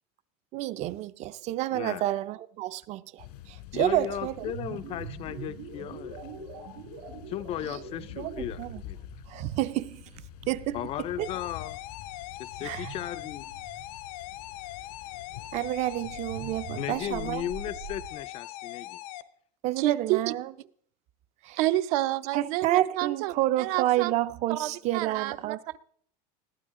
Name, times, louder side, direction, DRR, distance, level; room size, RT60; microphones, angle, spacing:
voice 1, 0.5-4.8 8.2-8.3 8.6-8.8 9.3-10.0 10.5-10.8 11.2-11.3 12.6-12.9 15.5-17.4 19.6-20.5 21.4-21.6 22.3-25.8, right 15 dB, 35° right, 0.5 m, -29 dB
voice 2, 1.7-2.0 3.7-6.2 7.3-9.1 10.7-11.8 12.4-13.5 16.8-19.0, left 11 dB, 30° left, 0.5 m, -36 dB
sound 1, 3.2-16.9, left 12 dB, 85° left, 2.3 m, -48 dB
sound 2, 4.5-14.6 15.9-18.1, right 5 dB, 85° right, 7.5 m, -44 dB
sound 3, 11.2-19.2, left 15 dB, 70° left, 0.9 m, -41 dB
voice 3, 19.8-20.3 21.6-24.1 24.5-25.6, right 15 dB, 70° right, 0.8 m, -29 dB
20.5 x 14.5 x 3.7 m
supercardioid pair, 160°, 19 cm